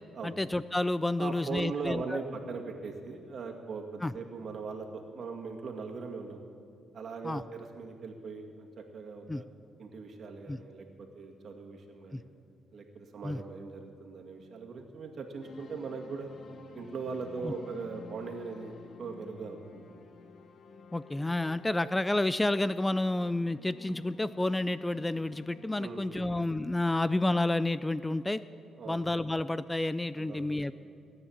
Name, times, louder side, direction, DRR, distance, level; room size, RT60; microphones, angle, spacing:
voice 1, 0.2-2.2 4.0-4.1 7.2-7.4 9.3-9.4 10.5-10.6 12.1-12.2 13.2-13.4 17.4-17.5 20.9-28.4 28.9-30.7, left 2 dB, 15° left, 15 dB, 0.3 m, -30 dB
voice 2, 1.2-6.4 6.9-9.5 9.8-12.2 12.7-16.3 16.7-18.7 19.0-19.8 25.8-26.3 28.8-29.0 30.2-30.6, right 4 dB, 55° right, 2 dB, 2.0 m, -40 dB
sound 1, 15.4-25.9, left 4 dB, 55° left, 1.2 m, -52 dB
17.5 x 9.7 x 7.2 m, 2.4 s
cardioid pair, 90°, 0 cm